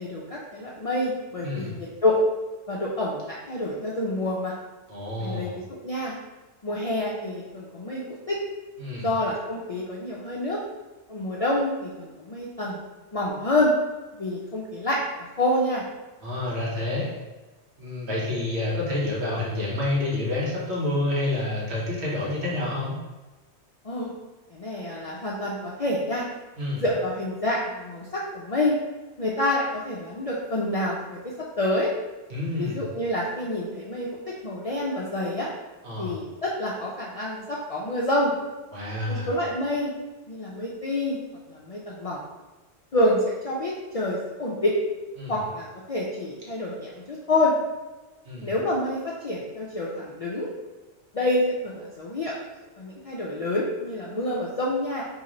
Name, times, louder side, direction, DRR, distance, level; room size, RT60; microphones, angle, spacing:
voice 1, 0.0-2.2 2.7-4.5 5.2-6.1 6.6-8.4 9.0-10.6 11.1-12.8 13.1-13.7 14.1-15.0 15.4-15.8 23.8-24.1 24.5-26.2 26.7-28.7 29.2-31.9 32.6-35.5 36.0-38.3 39.1-39.9 40.3-41.2 41.5-42.2 42.9-44.7 45.3-47.5 48.4-50.5 51.1-52.3 52.8-55.0, left 1 dB, 55° left, -4 dB, 0.4 m, -27 dB
voice 2, 1.4-1.7 4.9-5.5 8.8-9.1 16.2-17.1 17.8-23.0 26.6-26.8 32.3-32.8 35.8-36.2 38.7-39.3 45.2-45.4 48.2-48.5, left 2 dB, 70° right, -5 dB, 1.3 m, -28 dB
3.1 x 2.8 x 3.7 m, 1.2 s
omnidirectional pair, 1.2 m